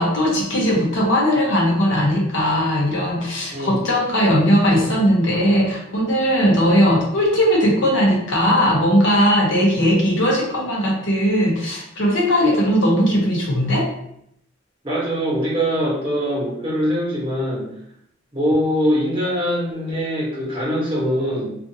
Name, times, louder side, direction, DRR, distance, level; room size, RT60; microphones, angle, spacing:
voice 1, 0.0-13.9, equal, 65° left, -3 dB, 0.7 m, -18 dB
voice 2, 3.5-3.9 14.8-17.7 18.3-21.5, equal, 25° right, -7 dB, 1.0 m, -22 dB
2.5 x 2.4 x 2.7 m, 0.73 s
head